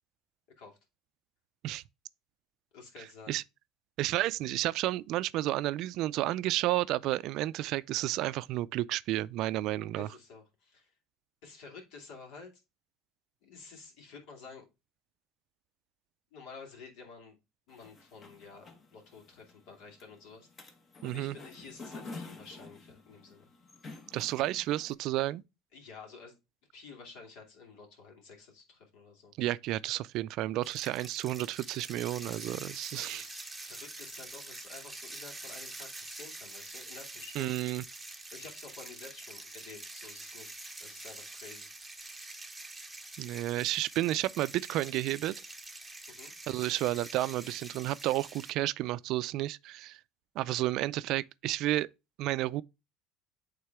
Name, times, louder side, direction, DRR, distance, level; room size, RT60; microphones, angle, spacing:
voice 1, 2.7-3.4 10.0-10.9 11.4-12.6 13.4-14.7 16.3-17.4 17.7-20.7 21.0-23.5 25.7-26.3 26.7-29.3 33.0-37.5 37.9-41.7 46.1-46.3, left 4 dB, 75° left, 2.5 m, -51 dB
voice 2, 4.0-10.1 21.0-21.4 24.1-25.4 29.4-33.2 37.4-37.8 43.2-45.4 46.5-50.0 50.4-51.9 52.2-52.6, right 15 dB, 60° right, 0.3 m, -31 dB
sound 1, 17.7-24.9, left 3 dB, 30° left, 1.1 m, -49 dB
sound 2, 30.6-48.5, right 2 dB, 5° right, 0.9 m, -46 dB
8.7 x 3.7 x 3.5 m
supercardioid pair, 115°, 0 cm